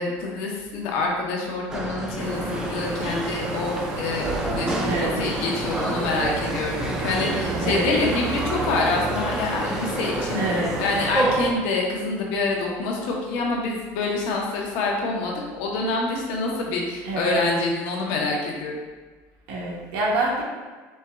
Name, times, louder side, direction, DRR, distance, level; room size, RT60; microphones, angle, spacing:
voice 1, 0.0-18.8, left 3 dB, 75° left, -1 dB, 0.9 m, -26 dB
sound 1, 1.7-11.5, right 2 dB, 10° right, 0.3 m, -29 dB
sound 2, 2.2-11.1, right 1 dB, 35° right, 0.7 m, -32 dB
voice 2, 4.8-5.2 7.6-8.0 10.3-10.8 17.0-17.4 19.5-20.4, right 2 dB, 85° right, -4 dB, 1.2 m, -26 dB
4.3 x 2.3 x 3.6 m, 1.4 s
cardioid pair, 175°, 6 cm